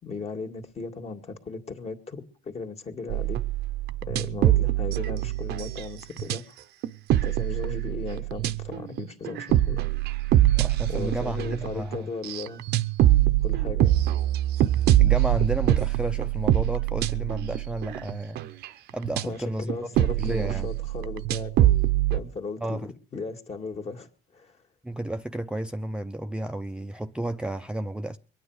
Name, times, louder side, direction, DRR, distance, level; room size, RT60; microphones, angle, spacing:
voice 1, 0.0-3.4 4.1-6.6 7.2-9.8 10.9-12.6 13.4-13.9 19.2-21.7 22.1-24.6, left 4 dB, 40° left, 2.1 m, -37 dB
sound 1, 3.1-6.4 6.8-19.2 19.7-22.2, right 14 dB, 75° right, 0.8 m, -24 dB
voice 2, 10.5-12.1 15.0-18.4 18.9-19.8 20.2-20.7 22.6-22.9 24.8-28.2, right 1 dB, 5° right, 0.6 m, -32 dB
23.0 x 9.4 x 4.9 m
cardioid pair, 110°, 17 cm